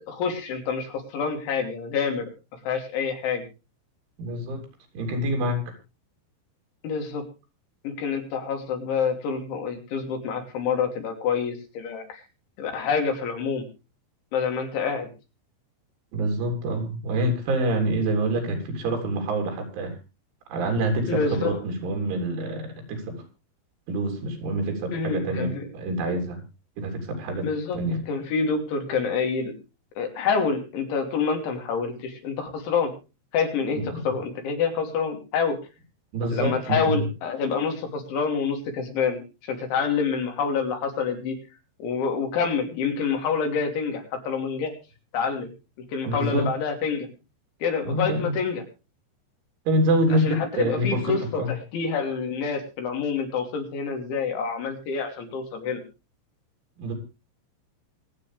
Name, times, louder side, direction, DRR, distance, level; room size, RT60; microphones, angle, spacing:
voice 1, 0.0-2.3 2.6-3.4 6.8-7.2 7.8-12.2 12.6-13.7 14.3-15.1 21.1-21.6 24.9-25.6 27.4-27.8 28.1-29.5 30.0-32.9 33.3-35.6 36.3-41.4 41.8-44.7 45.1-45.5 45.9-47.1 47.6-48.6 50.1-55.8, left 5 dB, 75° left, 4 dB, 5.4 m, -27 dB
voice 2, 4.2-4.6 4.9-5.6 16.1-19.9 20.5-23.2 23.9-26.4 26.8-27.5 27.7-28.0 33.8-34.1 36.1-37.0 46.1-46.5 47.9-48.4 49.7-51.5 56.8-56.9, right 1 dB, 85° right, 4 dB, 6.0 m, -26 dB
25.0 x 8.7 x 3.4 m, 0.30 s
omnidirectional pair, 5.4 m